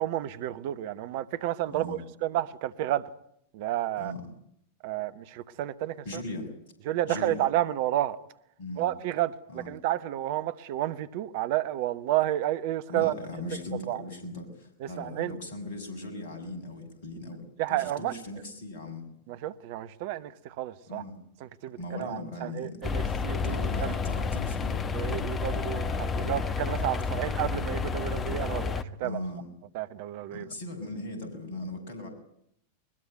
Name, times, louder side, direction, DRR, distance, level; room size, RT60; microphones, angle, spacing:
voice 1, 0.0-3.0 3.5-4.1 4.8-5.9 6.9-8.2 8.8-13.1 13.9-14.0 15.0-15.3 17.6-18.1 19.3-21.0 21.6-23.9 24.9-29.2 29.7-30.5, right 14 dB, 50° right, 1.1 m, -31 dB
voice 2, 1.6-2.0 4.0-4.2 6.0-6.5 7.1-7.4 8.6-8.9 9.5-9.7 12.9-19.0 20.9-21.2 21.8-22.8 23.4-24.8 28.0-28.3 29.0-29.5 30.3-32.1, left 2 dB, 55° left, 7.1 m, -39 dB
sound 1, 22.8-28.8, left 5 dB, 20° left, 1.3 m, -30 dB
22.0 x 21.0 x 9.4 m
figure-of-eight pair, 90°, 0 cm